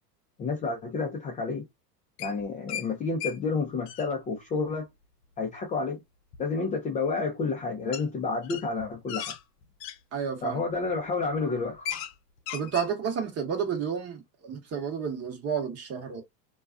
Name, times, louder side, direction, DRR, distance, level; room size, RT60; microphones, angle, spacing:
voice 1, 0.4-1.7 2.2-4.9 5.4-6.0 6.4-9.3 10.4-12.0, left 4 dB, 15° left, 0.3 m, -30 dB
sound 1, 2.2-2.9 3.2-3.4 3.7-4.1 6.3-6.4 7.9-8.1 8.4-10.0 10.7-10.9 11.3-11.4 11.6-12.1 12.4-12.9, left 10 dB, 75° left, 0.7 m, -36 dB
voice 2, 10.1-10.6 12.5-16.2, right 7 dB, 30° right, 0.9 m, -31 dB
2.3 x 2.3 x 2.4 m
hypercardioid pair, 95°, 49 cm